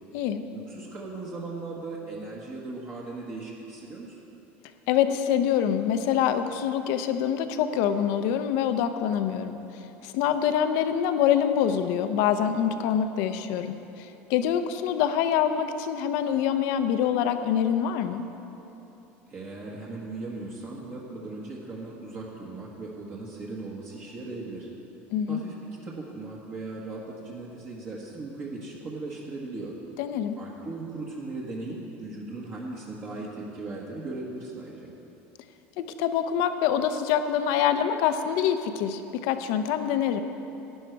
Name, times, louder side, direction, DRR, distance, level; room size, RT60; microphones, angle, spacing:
voice 1, 0.5-4.2 19.3-24.7 25.3-25.6 25.8-29.8 30.4-34.9, right 3 dB, 40° right, -4 dB, 1.6 m, -38 dB
voice 2, 4.9-9.6 10.0-18.2 25.1-25.4 30.0-30.4 35.8-40.2, left 9 dB, 70° left, 9 dB, 0.7 m, -25 dB
12.0 x 9.9 x 4.7 m, 3.0 s
supercardioid pair, 115°, 6 cm